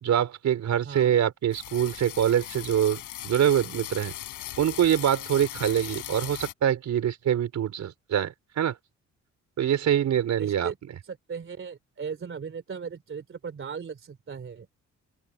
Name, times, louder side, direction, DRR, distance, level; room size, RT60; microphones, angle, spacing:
voice 1, 0.0-4.1 4.6-8.7 9.6-10.7, right 10 dB, 65° right, 4.6 m, -24 dB
sound 1, 1.5-6.5, left 14 dB, 85° left, 6.6 m, -39 dB
voice 2, 10.4-10.8 11.1-14.7, right 6 dB, 45° right, 3.3 m, -37 dB
open air
cardioid pair, 90°, 30 cm